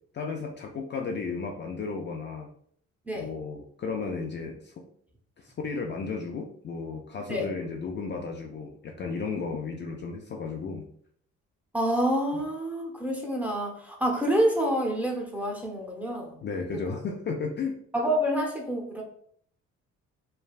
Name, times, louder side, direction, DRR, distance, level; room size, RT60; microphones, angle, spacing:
voice 1, 0.1-2.5 3.1-4.7 5.4-10.9 16.4-17.8, left 4 dB, 40° left, 1 dB, 0.4 m, -34 dB
voice 2, 11.7-16.4 17.9-19.0, equal, 5° right, 0 dB, 0.7 m, -27 dB
3.3 x 2.3 x 2.3 m, 0.62 s
cardioid pair, 90°, 30 cm